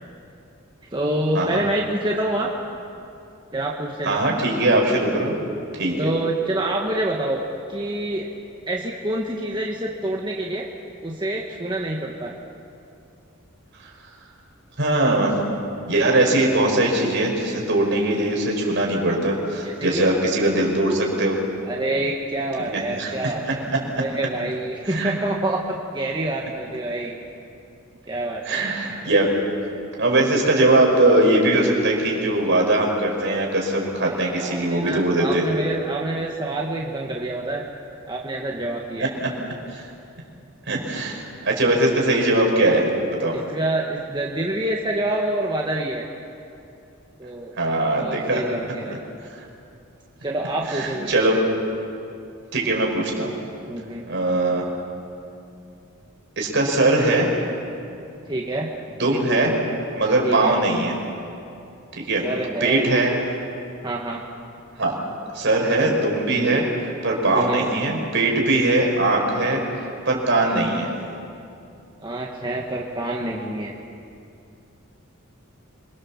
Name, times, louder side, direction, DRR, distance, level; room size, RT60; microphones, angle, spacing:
voice 1, 0.9-2.5 3.5-4.2 6.0-7.4 7.7-8.3 8.7-10.6 11.0-12.3 19.6-20.1 21.6-23.7 24.0-27.2 28.1-28.8 34.0-37.6 38.1-39.1 41.6-41.7 43.3-46.0 47.2-47.5 48.0-49.0 50.2-51.1 53.7-54.1 58.3-58.7 60.2-60.6 62.2-62.9 63.8-64.2 67.3-67.7 72.0-73.8, right 1 dB, 20° right, -1 dB, 1.6 m, -27 dB
voice 2, 4.1-5.3 5.7-6.1 13.8-13.9 14.8-15.4 15.9-21.4 22.7-23.8 24.9-25.2 28.4-29.3 30.0-35.4 39.2-39.3 39.7-39.8 40.7-42.8 43.2-43.3 47.6-48.4 50.7-51.4 52.5-53.3 54.1-54.7 56.4-57.3 58.9-59.5 60.0-61.0 61.9-62.2 62.6-63.1 64.8-64.9 65.3-66.6 67.0-69.6 70.1-70.9, right 2 dB, 60° right, 0 dB, 5.7 m, -21 dB
27.0 x 23.5 x 7.4 m, 2.6 s
head